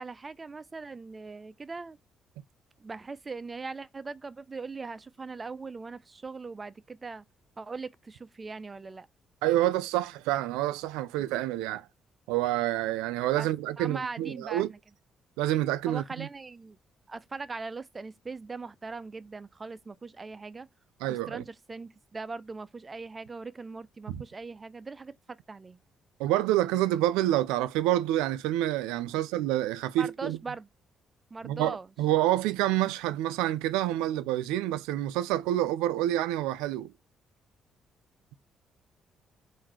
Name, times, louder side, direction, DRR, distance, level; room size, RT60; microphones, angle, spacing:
voice 1, 0.0-2.0 2.8-7.2 7.6-9.1 11.2-11.3 13.4-13.5 13.8-14.8 15.9-16.8 17.1-20.7 21.1-25.8 29.1-29.2 30.0-30.7 31.3-31.9, right 4 dB, 35° right, 0.5 m, -40 dB
voice 2, 9.4-11.8 12.3-14.7 15.4-16.3 21.0-21.4 24.1-24.2 26.2-30.4 31.4-36.9, right 14 dB, 85° right, 0.4 m, -28 dB
3.9 x 2.7 x 4.2 m
supercardioid pair, 55°, 0 cm